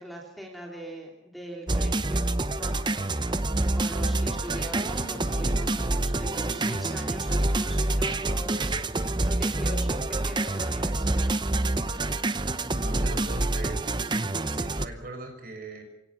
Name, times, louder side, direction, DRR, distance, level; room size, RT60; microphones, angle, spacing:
voice 1, 0.0-2.3 2.6-3.1 3.8-8.8 9.2-11.3, right 1 dB, ahead, -1 dB, 3.0 m, -41 dB
sound 1, 1.7-14.9, right 2 dB, 25° right, 0.8 m, -27 dB
sound 2, 2.0-9.8, equal, 55° left, 4.3 m, -47 dB
sound 3, 5.0-11.2, equal, 30° left, 4.5 m, -51 dB
voice 2, 12.7-15.8, right 2 dB, 45° right, 4 dB, 6.1 m, -41 dB
28.5 x 17.5 x 6.1 m, 0.84 s
head